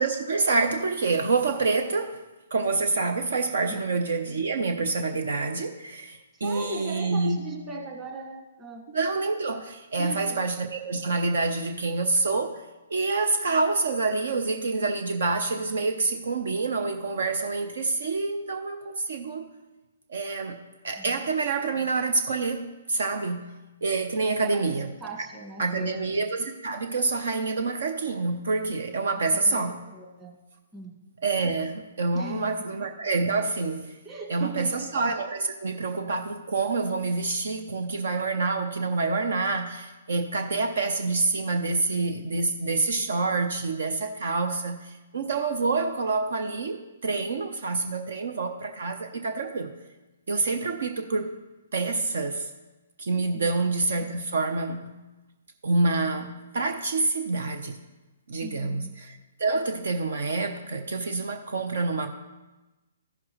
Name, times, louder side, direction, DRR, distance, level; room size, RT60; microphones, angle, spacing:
voice 1, 0.0-2.2 2.5-7.4 8.9-12.6 12.9-19.5 20.1-23.5 23.8-24.9 25.6-29.8 31.2-33.9 34.3-49.7 50.3-51.3 51.7-52.5 53.0-54.9 55.6-57.8 58.3-62.1, right 3 dB, 70° right, 6 dB, 0.6 m, -27 dB
voice 2, 6.4-8.9 10.0-10.4 21.0-21.2 24.4-24.7 25.0-26.1 29.1-30.4 30.7-31.0 32.1-32.5 34.0-34.9 53.3-53.5 58.4-58.9, right 3 dB, 15° right, 0 dB, 1.6 m, -39 dB
14.0 x 6.0 x 3.1 m, 1.1 s
hypercardioid pair, 130°, 0 cm